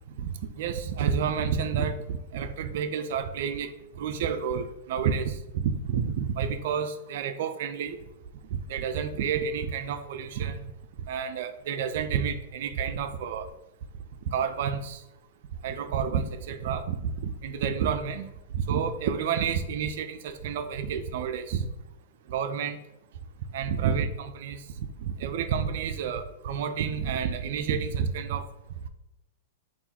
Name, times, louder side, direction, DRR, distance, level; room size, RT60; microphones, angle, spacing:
voice 1, 0.6-3.7 4.0-8.0 8.5-10.7 11.1-13.5 14.3-15.0 15.6-18.3 18.5-21.6 22.3-22.8 23.5-24.6 25.0-28.5, right 7 dB, 60° right, 11 dB, 0.4 m, -29 dB
3.6 x 2.5 x 4.2 m, 0.94 s
hypercardioid pair, 110°, 0 cm